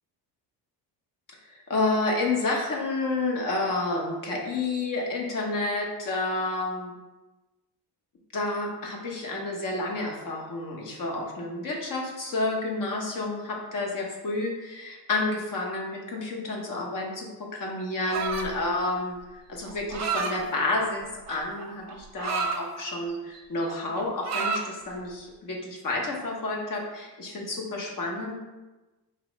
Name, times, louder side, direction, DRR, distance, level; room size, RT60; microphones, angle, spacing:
voice 1, 1.4-6.9 8.3-28.4, left 2 dB, 45° left, -1 dB, 1.0 m, -30 dB
sound 1, 18.1-18.6 19.7-20.4 21.3-22.6 23.1-23.4 23.6-24.7, right 5 dB, 40° right, 0.6 m, -30 dB
4.2 x 3.0 x 3.1 m, 1.1 s
cardioid pair, 100°, 44 cm